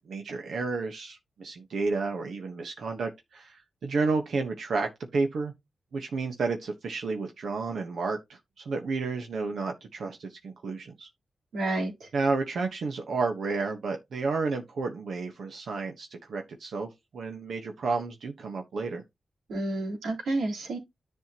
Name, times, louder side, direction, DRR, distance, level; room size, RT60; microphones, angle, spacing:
voice 1, 0.0-5.5 5.9-11.1 12.1-19.0, right 4 dB, 70° right, 1.2 m, -31 dB
voice 2, 11.5-12.1 19.5-20.8, right 2 dB, 90° right, 3.8 m, -30 dB
10.5 x 5.6 x 3.0 m
cardioid pair, 100°, 0 cm